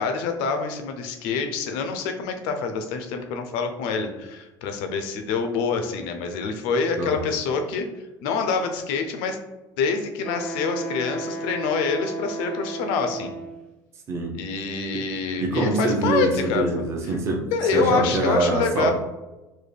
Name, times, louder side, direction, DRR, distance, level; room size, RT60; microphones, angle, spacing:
voice 1, 0.0-7.9 8.2-9.4 9.8-13.3 14.4-16.6 17.5-18.9, left 5 dB, 80° left, 6 dB, 0.5 m, -26 dB
Wind instrument woodwind instrument, 10.2-13.7, right 2 dB, 10° left, 0.4 m, -33 dB
voice 2, 15.4-17.5 17.7-18.9, right 2 dB, 30° right, 1 dB, 0.6 m, -24 dB
4.0 x 2.2 x 3.3 m, 1.1 s
cardioid pair, 165°, 9 cm